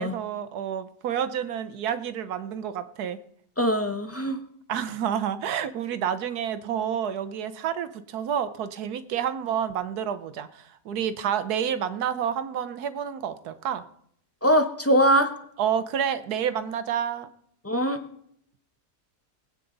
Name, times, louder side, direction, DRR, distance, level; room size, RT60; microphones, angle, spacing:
voice 1, 0.0-3.2 4.7-13.8 15.6-17.3, right 9 dB, 75° right, 12 dB, 1.3 m, -29 dB
voice 2, 3.6-4.4 14.4-15.3 17.6-18.0, equal, 10° left, 7 dB, 0.7 m, -22 dB
20.0 x 9.0 x 3.9 m, 0.69 s
omnidirectional pair, 1.7 m